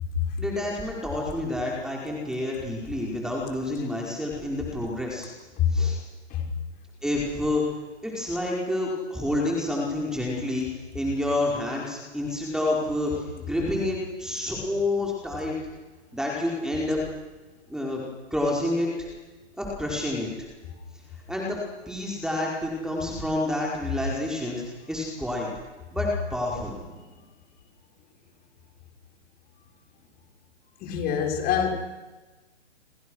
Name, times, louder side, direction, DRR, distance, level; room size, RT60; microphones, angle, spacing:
voice 1, 0.4-5.3 5.7-6.0 7.0-7.6 8.0-10.7 10.9-15.5 16.1-17.0 17.7-18.0 18.3-18.9 19.6-20.3 21.3-21.6 21.9-25.5 25.9-26.9, left 1 dB, ahead, -2 dB, 4.9 m, -28 dB
voice 2, 30.8-31.7, left 9 dB, 25° left, 2 dB, 5.6 m, -25 dB
29.0 x 25.5 x 6.5 m, 1.2 s
hypercardioid pair, 135°, 35 cm